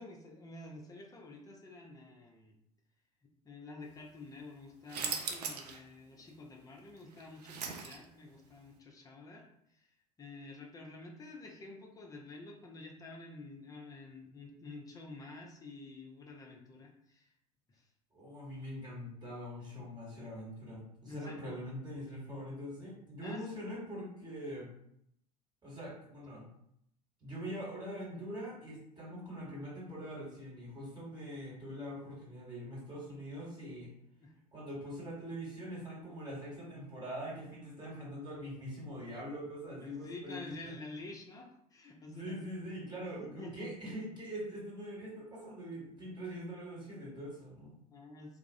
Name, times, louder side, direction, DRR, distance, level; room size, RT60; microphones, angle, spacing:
voice 1, 0.0-2.5 3.2-9.9 10.2-17.3 17.7-17.9 21.0-21.4 23.2-23.5 34.2-34.3 39.8-42.5 43.2-43.7 46.0-46.1 47.9-48.4, left 2 dB, 15° left, 0 dB, 0.5 m, -49 dB
sound 1, 4.9-5.8 6.2-6.3 7.0-8.3, right 6 dB, 70° right, 0.4 m, -39 dB
voice 2, 18.1-24.7 25.6-26.5 27.2-33.9 34.5-40.8 42.1-47.8, equal, 20° right, -6 dB, 1.3 m, -43 dB
2.3 x 2.0 x 2.6 m, 0.73 s
figure-of-eight pair, 70°, 21 cm